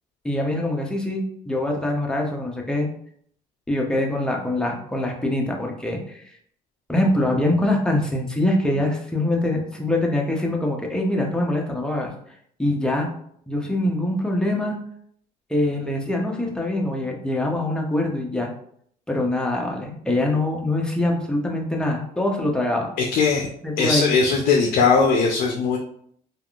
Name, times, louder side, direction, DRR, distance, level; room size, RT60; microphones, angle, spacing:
voice 1, 0.2-2.9 3.7-6.2 6.9-12.1 12.6-13.1 13.5-14.8 15.5-18.5 19.1-22.9 23.6-24.1, left 1 dB, 5° left, 0 dB, 0.6 m, -24 dB
voice 2, 23.0-23.5 23.8-25.8, left 5 dB, 60° left, 1 dB, 0.5 m, -19 dB
3.4 x 2.4 x 2.3 m, 0.65 s
cardioid pair, 110°, 17 cm